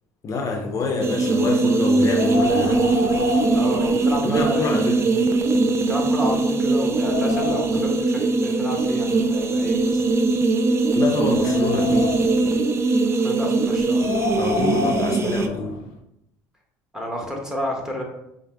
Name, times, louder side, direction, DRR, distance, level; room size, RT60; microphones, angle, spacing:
voice 1, 0.2-2.9 4.2-5.0 11.0-12.1 14.4-15.8, left 3 dB, 40° left, 2 dB, 0.6 m, -26 dB
sound 1, 1.0-15.5, right 3 dB, 35° right, 0.4 m, -21 dB
Wind, 2.0-4.6 4.9-5.0 5.7-5.8 6.3-7.9 8.8-10.3 10.9-12.5 13.7-15.9, left 5 dB, 85° left, 0.4 m, -30 dB
voice 2, 3.5-5.1 5.9-10.0 13.1-14.1 16.9-18.0, equal, 5° right, 0 dB, 1.2 m, -30 dB
4.9 x 2.1 x 3.5 m, 0.82 s
supercardioid pair, 80°, 8 cm